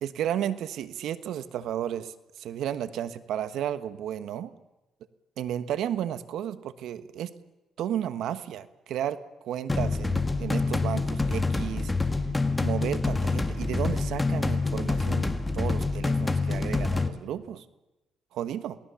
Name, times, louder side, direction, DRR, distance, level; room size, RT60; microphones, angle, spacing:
voice 1, 0.0-4.5 5.4-7.3 7.8-11.9 12.6-17.6 18.3-18.8, right 10 dB, 80° right, 13 dB, 1.3 m, -33 dB
sound 1, 9.7-17.1, left 3 dB, 15° left, 1.8 m, -27 dB
29.0 x 18.5 x 7.1 m, 1.0 s
cardioid pair, 90°, 0 cm